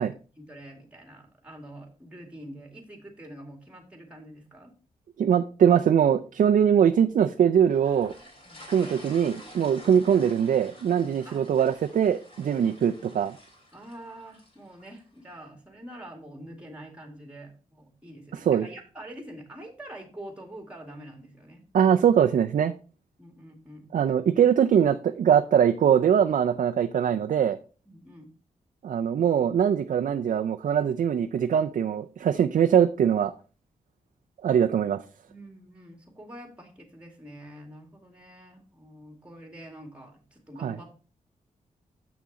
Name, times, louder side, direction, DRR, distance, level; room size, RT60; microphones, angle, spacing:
voice 1, 0.0-4.7 8.4-8.6 11.2-11.5 12.5-13.1 13.7-22.0 23.2-23.9 27.9-28.3 35.3-40.9, right 1 dB, 10° right, 3 dB, 2.1 m, -46 dB
voice 2, 5.2-8.1 8.7-13.4 18.5-18.6 21.7-22.7 23.9-27.6 28.8-33.3 34.4-35.0 40.6-40.7, right 8 dB, 70° right, 6 dB, 0.5 m, -22 dB
sound 1, 7.7-15.0, left 1 dB, 40° left, 3.5 m, -49 dB
7.0 x 6.2 x 4.1 m, 0.36 s
cardioid pair, 85°, 14 cm